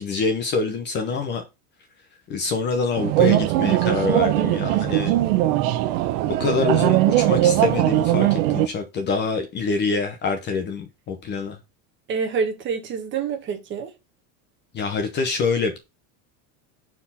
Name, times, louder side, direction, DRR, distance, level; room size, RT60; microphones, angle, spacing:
voice 1, 0.0-1.4 2.3-5.1 6.4-11.6 14.7-15.8, left 4 dB, 25° left, 0.8 m, -25 dB
sound 1, 3.0-8.7, right 14 dB, 60° right, 0.8 m, -20 dB
voice 2, 8.2-8.5 12.1-13.9, right 5 dB, 25° right, 1.3 m, -27 dB
6.0 x 4.6 x 5.7 m
supercardioid pair, 170°, 44 cm